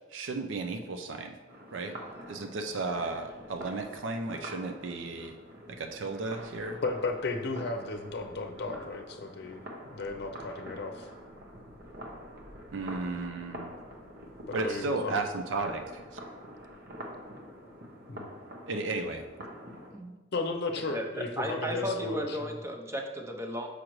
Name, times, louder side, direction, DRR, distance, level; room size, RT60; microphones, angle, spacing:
voice 1, 0.1-1.4 1.7-1.9 2.3-5.3 5.7-6.8 12.7-13.7 14.5-15.8 18.7-19.2, right 3 dB, 75° right, 5 dB, 0.5 m, -34 dB
sound 1, 1.5-19.9, equal, 55° right, 0.9 m, -46 dB
voice 2, 6.8-9.6 9.9-11.1 14.5-15.2 18.1-18.3 20.3-22.6, left 3 dB, 60° left, 5 dB, 0.6 m, -34 dB
voice 3, 20.9-23.7, equal, 15° right, 3 dB, 0.6 m, -34 dB
6.4 x 5.0 x 3.1 m, 1.2 s
head